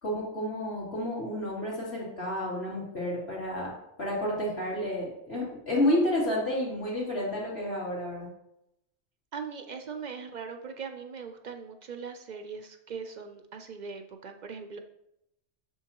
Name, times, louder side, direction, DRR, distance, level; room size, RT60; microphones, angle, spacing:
voice 1, 0.0-3.7 4.0-8.3, left 1 dB, 60° left, -6 dB, 2.9 m, -30 dB
voice 2, 9.3-14.8, right 5 dB, 55° right, 6 dB, 0.5 m, -40 dB
7.3 x 6.3 x 2.9 m, 0.84 s
omnidirectional pair, 1.2 m